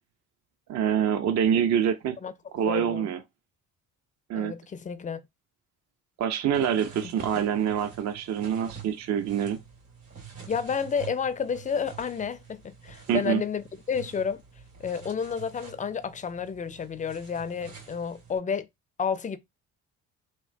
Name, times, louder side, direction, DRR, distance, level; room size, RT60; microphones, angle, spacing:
voice 1, 0.7-2.2 2.5-3.2 4.3-4.5 6.2-9.6 13.1-13.4, right 8 dB, 45° right, 0.5 m, -26 dB
voice 2, 2.6-3.1 4.3-5.2 7.0-7.1 10.5-14.4 14.8-18.7 19.0-19.4, left 6 dB, 20° left, 0.4 m, -31 dB
sound 1, 6.5-18.4, right 7 dB, 70° right, 1.8 m, -47 dB
2.9 x 2.1 x 2.5 m
hypercardioid pair, 55°, 37 cm